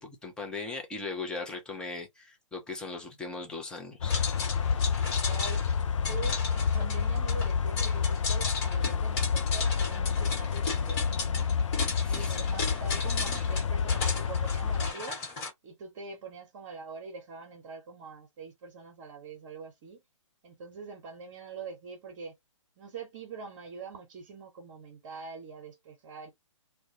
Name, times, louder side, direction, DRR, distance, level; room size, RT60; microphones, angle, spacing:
voice 1, 0.0-4.2 12.0-12.3, left 3 dB, 5° left, 0.5 m, -38 dB
sound 1, 4.0-14.9, left 6 dB, 75° left, 0.4 m, -29 dB
sound 2, 4.1-15.5, left 4 dB, 30° left, 1.2 m, -36 dB
voice 2, 5.2-11.5 12.1-15.2 15.6-20.0 20.4-22.3 22.8-26.3, right 5 dB, 35° right, 0.9 m, -44 dB
2.2 x 2.1 x 2.7 m
figure-of-eight pair, 130°, 16 cm